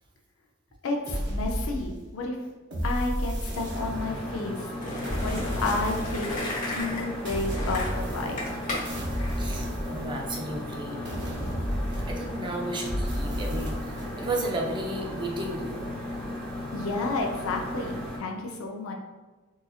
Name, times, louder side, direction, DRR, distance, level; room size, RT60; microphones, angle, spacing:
voice 1, 0.8-2.4 2.8-4.7 5.2-6.3 6.7-8.6 16.7-18.9, left 2 dB, 85° left, 1 dB, 0.5 m, -31 dB
sound 1, 1.1-2.2 2.7-4.3 5.0-6.4 7.2-8.6 8.8-10.4 11.0-12.4 12.8-14.1, equal, 55° right, 0.7 m, -32 dB
sound 2, 3.7-18.2, left 1 dB, 5° left, 0.8 m, -36 dB
Skateboard, 4.8-10.3, left 1 dB, 40° left, 0.9 m, -35 dB
voice 2, 9.4-11.0 12.1-16.0, right 1 dB, 25° right, 0 dB, 0.5 m, -33 dB
3.8 x 2.7 x 2.3 m, 1.3 s
head